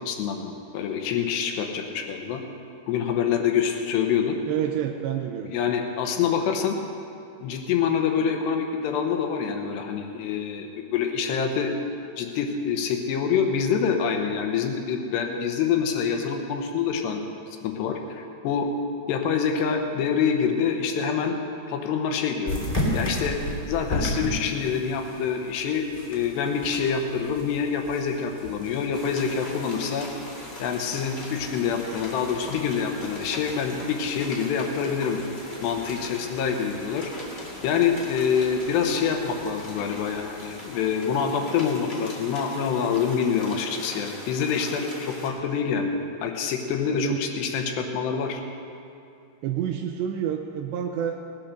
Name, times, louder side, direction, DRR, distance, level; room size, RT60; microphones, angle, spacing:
voice 1, 0.0-2.4 2.9-4.4 5.5-6.8 7.4-11.8 12.2-17.2 17.6-18.7 19.1-21.3 21.7-22.6 22.9-23.4 23.7-30.1 30.6-35.2 35.6-37.1 37.6-48.4, left 6 dB, 75° left, 4 dB, 3.0 m, -26 dB
voice 2, 4.5-5.5 46.9-47.2 49.4-51.2, right 9 dB, 80° right, 3 dB, 2.8 m, -28 dB
sound 1, 22.5-40.9, left 1 dB, 10° left, 2.1 m, -37 dB
sound 2, 28.9-45.3, left 1 dB, 30° left, 1.2 m, -41 dB
18.5 x 8.9 x 6.6 m, 2.6 s
omnidirectional pair, 5.1 m